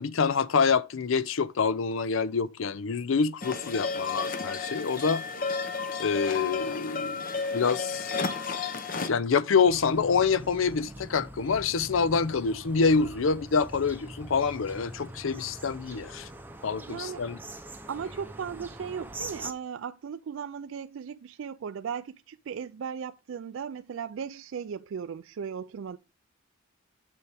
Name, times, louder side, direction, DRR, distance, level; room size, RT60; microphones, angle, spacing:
voice 1, 0.0-5.2 6.0-7.3 7.5-8.1 9.1-16.3 16.6-17.4, left 5 dB, 65° left, 0.5 m, -26 dB
sound 1, 3.4-9.1, left 4 dB, 40° left, 0.8 m, -32 dB
sound 2, 9.7-19.5, right 1 dB, 10° right, 0.7 m, -43 dB
voice 2, 16.9-17.3 17.9-26.0, right 7 dB, 65° right, 0.3 m, -37 dB
7.0 x 6.8 x 3.3 m
head